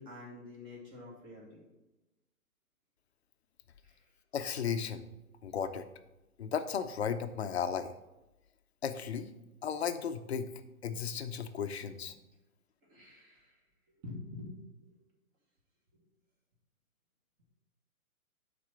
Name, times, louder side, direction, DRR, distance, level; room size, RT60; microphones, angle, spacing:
voice 1, 0.0-1.6 3.8-4.0 12.1-12.2 12.8-13.6 14.0-14.5 14.8-14.9, left 2 dB, 25° right, -2 dB, 2.2 m, -47 dB
voice 2, 4.3-5.1 5.4-5.9 6.4-7.9 8.8-9.3 9.6-10.5 10.8-12.1, left 7 dB, 45° left, 9 dB, 0.7 m, -35 dB
10.5 x 4.2 x 4.4 m, 0.99 s
figure-of-eight pair, 130°, 44 cm